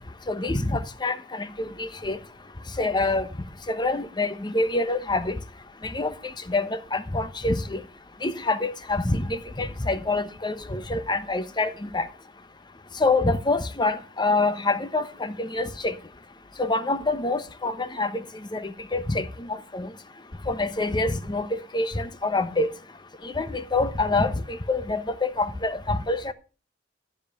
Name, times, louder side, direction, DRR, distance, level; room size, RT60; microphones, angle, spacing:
voice 1, 0.3-2.2 2.7-3.3 3.7-5.4 5.8-7.8 8.2-12.1 13.0-16.0 16.6-19.9 20.4-22.7 23.2-26.3, left 2 dB, 25° left, 0.9 m, -26 dB
13.0 x 5.2 x 6.9 m
head